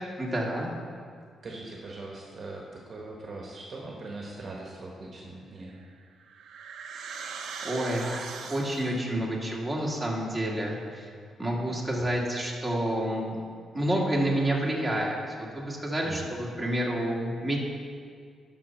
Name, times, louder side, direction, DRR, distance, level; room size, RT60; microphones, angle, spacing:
voice 1, 0.2-0.7 7.1-11.1 11.4-13.3 13.7-17.6, right 1 dB, 10° right, -4 dB, 1.8 m, -29 dB
voice 2, 1.4-5.7 16.0-16.3, right 2 dB, 45° right, -2 dB, 1.3 m, -41 dB
sound 1, 5.7-9.1, right 5 dB, 80° right, 0.7 m, -40 dB
11.0 x 5.8 x 4.4 m, 2.1 s
cardioid pair, 100°, 0 cm